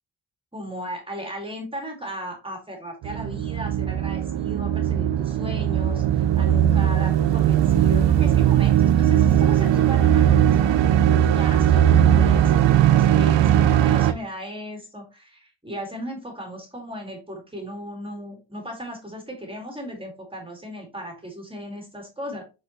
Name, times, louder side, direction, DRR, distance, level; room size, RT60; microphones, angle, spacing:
voice 1, 0.5-22.4, equal, 10° right, 2 dB, 2.0 m, -36 dB
Eerie Dark Drone Soundscape, 3.0-14.1, right 10 dB, 70° right, 0.6 m, -19 dB
7.8 x 4.2 x 3.0 m, 0.29 s
wide cardioid pair, 135°, 45 cm